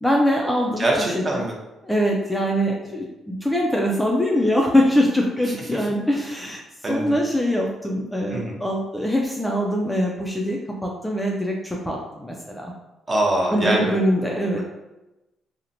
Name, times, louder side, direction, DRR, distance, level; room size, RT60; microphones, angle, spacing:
voice 1, 0.0-1.4 1.8-6.6 6.9-12.7 13.5-14.6, equal, 5° left, -1 dB, 0.3 m, -23 dB
voice 2, 0.8-1.5 5.7-5.8 6.8-7.1 8.3-8.6 13.1-13.9, right 1 dB, 30° right, -1 dB, 0.6 m, -23 dB
2.8 x 2.0 x 2.5 m, 1.0 s
cardioid pair, 90°, 0 cm